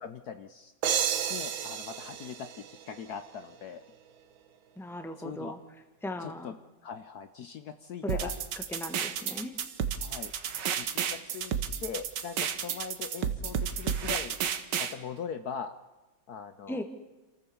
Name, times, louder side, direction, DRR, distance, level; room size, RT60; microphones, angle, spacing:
voice 1, 0.0-0.7 1.3-3.8 5.2-5.5 6.2-6.5 6.8-8.3 10.0-10.3 10.7-11.5 11.8-14.4 14.8-15.7 16.3-16.8, left 7 dB, 60° left, 10 dB, 1.2 m, -41 dB
sound 1, 0.8-3.5, right 9 dB, 85° right, 1.8 m, -32 dB
voice 2, 4.7-5.6 6.0-6.5 8.0-8.3 8.7-9.5 16.7-16.8, left 1 dB, ahead, 7 dB, 1.4 m, -37 dB
sound 2, 8.1-14.9, right 8 dB, 70° right, 1.7 m, -32 dB
27.5 x 14.5 x 7.0 m, 1.1 s
omnidirectional pair, 2.0 m